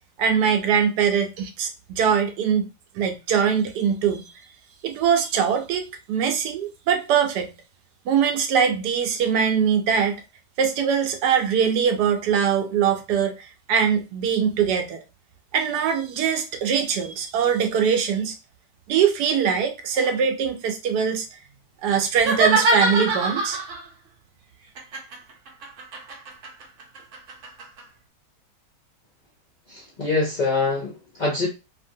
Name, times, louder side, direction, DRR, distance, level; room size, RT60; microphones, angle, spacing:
voice 1, 0.2-2.7 2.9-4.3 4.8-7.5 8.1-10.2 10.6-15.0 15.5-18.3 18.9-21.4 21.8-23.6, right 7 dB, 75° right, 1.1 m, -22 dB
sound 1, 22.1-23.9 24.8-27.8, right 3 dB, 60° right, 0.9 m, -24 dB
voice 2, 29.7-31.5, left 3 dB, 55° left, 0.5 m, -24 dB
2.8 x 2.6 x 2.6 m
omnidirectional pair, 1.8 m